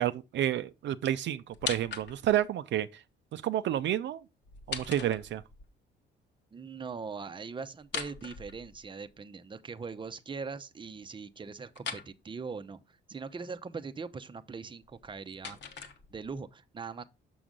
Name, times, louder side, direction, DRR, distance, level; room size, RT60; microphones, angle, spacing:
voice 1, 0.0-3.0 3.3-4.2 4.7-5.4, right 11 dB, 65° right, 0.5 m, -30 dB
sound 1, 1.5-2.5 4.4-5.7 7.8-9.1 11.7-12.1 14.8-16.4, left 6 dB, 60° left, 1.2 m, -40 dB
voice 2, 6.5-17.0, right 5 dB, 25° right, 0.6 m, -41 dB
6.2 x 6.0 x 3.7 m
cardioid pair, 90°, 20 cm